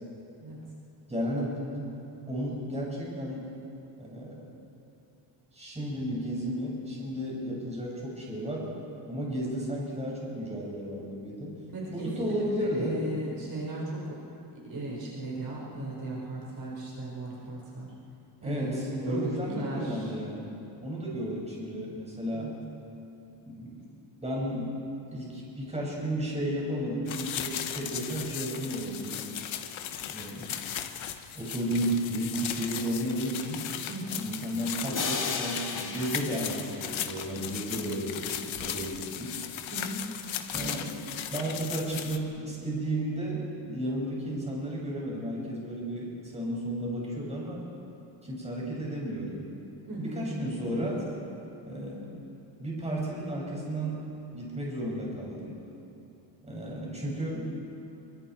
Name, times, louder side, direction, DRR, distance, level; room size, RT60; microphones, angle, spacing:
voice 1, 1.1-1.9 2.3-3.4 4.0-4.5 5.5-8.7 9.0-11.6 11.9-13.0 18.4-20.5 20.8-22.5 23.4-23.8 24.2-24.7 25.1-29.3 30.1-30.5 31.3-33.6 34.2-39.4 40.5-40.9 41.3-47.6 48.2-49.4 50.0-51.0 51.6-52.1 52.6-54.1 54.3-55.6 56.4-57.6, right 1 dB, 15° right, -4 dB, 6.4 m, -33 dB
voice 2, 11.7-14.1 14.5-17.9 18.4-20.1 22.3-22.5 33.9-34.2 39.7-40.0 49.9-50.3 50.7-50.9, right 2 dB, 45° right, -4 dB, 5.1 m, -36 dB
sound 1, 27.1-42.2, left 10 dB, 70° left, 1.3 m, -37 dB
sound 2, 34.9-37.8, left 4 dB, 40° left, 2.3 m, -36 dB
28.0 x 24.5 x 4.7 m, 2.8 s
cardioid pair, 150°, 48 cm